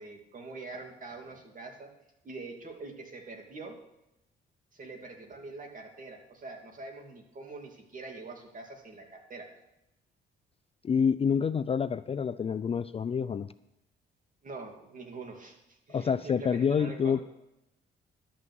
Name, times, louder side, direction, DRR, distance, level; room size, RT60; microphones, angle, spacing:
voice 1, 0.0-1.9 2.2-3.8 4.7-9.5 14.4-17.2, right 3 dB, 40° right, 2 dB, 2.6 m, -44 dB
voice 2, 10.8-13.5 15.9-17.2, left 6 dB, 30° left, 14 dB, 0.3 m, -27 dB
12.0 x 6.1 x 7.8 m, 0.87 s
cardioid pair, 90°, 20 cm